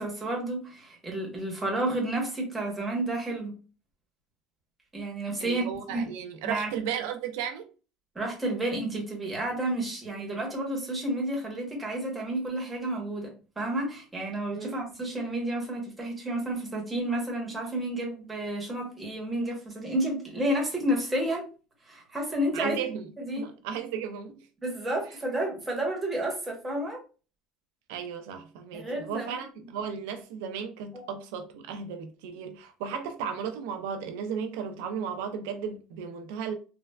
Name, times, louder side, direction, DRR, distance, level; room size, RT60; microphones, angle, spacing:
voice 1, 0.0-3.6 4.9-6.0 6.4-6.7 8.1-21.4 21.9-22.8 23.2-23.5 24.6-27.0 28.7-29.3 30.9-31.0, right 1 dB, 10° right, 0.8 m, -31 dB
voice 2, 5.4-7.7 14.5-14.7 22.5-23.0 23.4-24.5 27.9-36.6, right 7 dB, 85° right, 0.4 m, -35 dB
3.2 x 2.1 x 2.2 m
cardioid pair, 160°, 0 cm